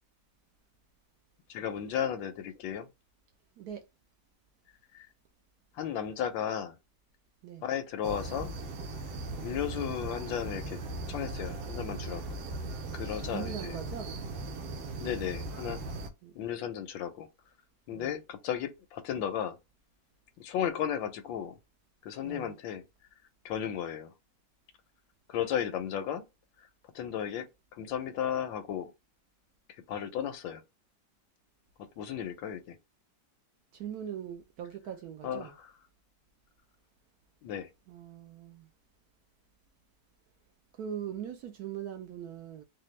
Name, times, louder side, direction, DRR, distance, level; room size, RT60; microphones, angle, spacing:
voice 1, 1.5-2.9 5.8-6.8 7.6-8.5 9.4-10.8 11.1-12.2 12.9-13.8 15.0-15.8 16.3-17.3 17.9-19.6 20.4-21.6 22.0-22.8 23.4-24.1 25.3-26.2 26.9-27.4 27.8-28.9 29.9-30.6 31.8-32.8 35.2-35.5 37.4-37.7, left 9 dB, 90° left, 1.4 m, -34 dB
sound 1, 8.0-16.1, right 2 dB, 85° right, 1.5 m, -38 dB
voice 2, 13.2-14.2 16.2-16.3 17.9-18.2 22.2-22.6 33.7-35.6 37.9-38.7 40.8-42.6, right 9 dB, 70° right, 0.9 m, -41 dB
4.1 x 2.2 x 3.1 m
omnidirectional pair, 2.0 m